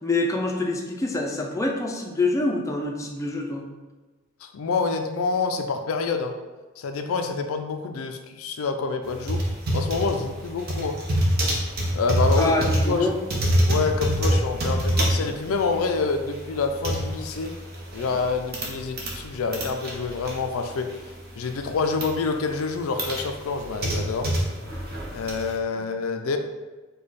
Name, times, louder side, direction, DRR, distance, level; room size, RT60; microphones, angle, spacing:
voice 1, 0.0-3.7 12.4-13.2 25.7-25.8, left 2 dB, 15° left, 0 dB, 0.4 m, -26 dB
voice 2, 4.4-6.3 6.8-9.4 9.7-11.0 11.9-12.5 12.9-13.1 13.7-17.5 17.9-20.9 21.4-24.3 25.1-26.4, left 4 dB, 90° left, 6 dB, 0.4 m, -27 dB
sound 1, 9.1-19.2 19.5-21.1 21.5-22.1 22.6-25.5, equal, 50° right, 0.9 m, -26 dB
5.1 x 2.2 x 4.1 m, 1.2 s
head